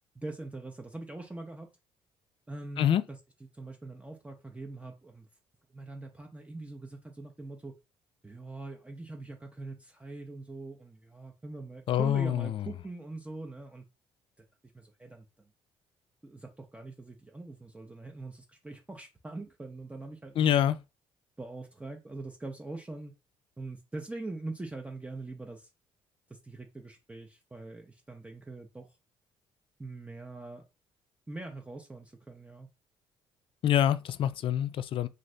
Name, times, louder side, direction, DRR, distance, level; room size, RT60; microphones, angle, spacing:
voice 1, 0.2-1.7 2.5-3.2 3.5-5.3 5.7-7.7 8.2-13.8 14.7-15.3 16.2-20.7 21.4-23.1 23.6-25.7 26.4-28.9 29.8-30.7 31.3-32.7, right 2 dB, 10° right, 0.5 m, -43 dB
voice 2, 11.9-12.7 20.4-20.8 33.6-35.1, left 10 dB, 55° left, 0.4 m, -26 dB
2.6 x 2.5 x 3.2 m
supercardioid pair, 65°, 11 cm